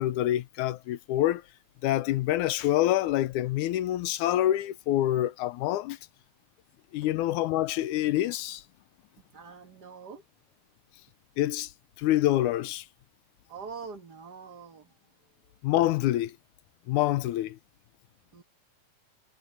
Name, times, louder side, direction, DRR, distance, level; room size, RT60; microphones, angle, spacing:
voice 1, 0.0-1.4 1.8-6.0 6.9-8.6 11.4-11.7 12.0-12.9 15.6-16.4 16.9-17.6, left 14 dB, 90° left, 2.2 m, -26 dB
voice 2, 9.3-10.2 13.5-14.9 18.3-18.4, right 5 dB, 40° right, 1.7 m, -43 dB
omnidirectional pair, 3.4 m